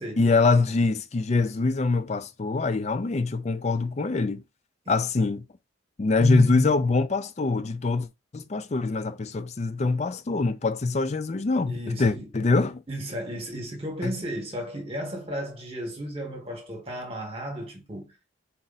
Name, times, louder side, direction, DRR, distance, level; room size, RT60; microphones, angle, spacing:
voice 1, 0.2-4.4 4.9-5.4 6.0-8.1 8.3-12.8 14.0-14.1, left 3 dB, 35° left, 0.4 m, -24 dB
voice 2, 6.2-6.7 11.7-12.3 12.9-18.1, right 1 dB, 30° right, 1.4 m, -32 dB
4.1 x 2.5 x 4.0 m
head